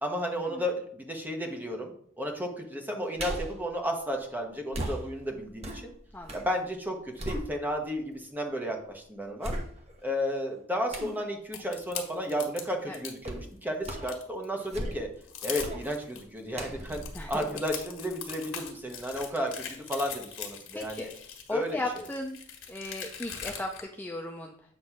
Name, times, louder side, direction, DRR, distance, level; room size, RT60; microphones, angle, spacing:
voice 1, 0.0-5.9 6.3-9.5 10.0-15.1 15.4-21.1 21.5-21.8, equal, 10° right, 2 dB, 1.1 m, -33 dB
sound 1, 3.2-3.6 4.7-6.5 6.9-8.0 8.5-8.6 9.4-10.1 10.9-11.2 13.2-13.5 13.8-14.2 14.6-15.2 15.6-15.9 16.5-18.2 18.6-18.7, right 1 dB, 35° right, 1.1 m, -37 dB
voice 2, 6.1-6.4 12.9-13.0 17.1-17.4 20.7-22.4 22.7-24.5, left 1 dB, 10° left, 1 dB, 0.5 m, -36 dB
sound 2, 11.5-13.2 13.6-14.5 14.9-15.0 15.2-16.2 16.7-23.8, left 8 dB, 70° left, 1.4 m, -41 dB
8.2 x 3.1 x 5.9 m, 0.62 s
head